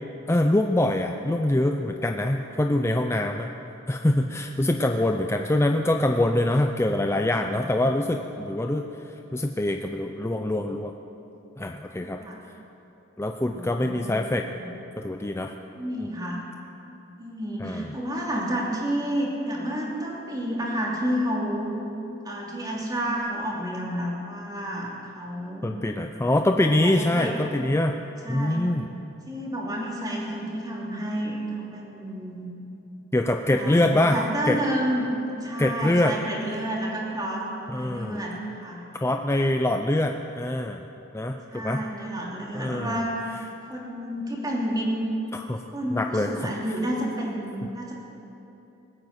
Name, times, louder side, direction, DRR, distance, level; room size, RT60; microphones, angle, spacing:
voice 1, 0.3-3.5 3.9-8.9 9.3-10.9 11.6-12.2 13.2-14.5 15.0-15.5 16.0-16.1 17.6-17.9 25.6-28.0 28.3-28.9 33.1-34.2 34.5-34.6 35.6-36.2 37.7-38.2 39.0-40.8 41.1-41.8 42.5-43.0 45.3-45.6 45.9-46.3, left 1 dB, 15° left, 4 dB, 0.5 m, -24 dB
voice 2, 13.4-14.1 14.4-14.7 15.7-16.4 17.2-21.7 22.2-25.8 26.8-27.3 28.2-28.7 29.3-32.5 33.5-35.1 35.4-38.8 41.5-43.2 43.7-44.9 45.7-47.9, equal, 20° right, -4 dB, 3.0 m, -30 dB
20.0 x 9.0 x 8.0 m, 2.9 s
head